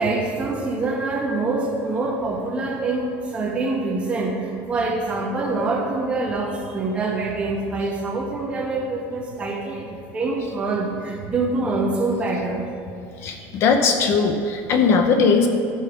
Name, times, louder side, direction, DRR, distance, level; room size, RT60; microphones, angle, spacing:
voice 1, 0.0-4.3 4.7-12.6, right 3 dB, 20° right, 0 dB, 1.3 m, -25 dB
voice 2, 13.2-15.5, left 5 dB, 40° left, 5 dB, 0.7 m, -19 dB
13.0 x 6.3 x 5.1 m, 2.5 s
cardioid pair, 170°, 7 cm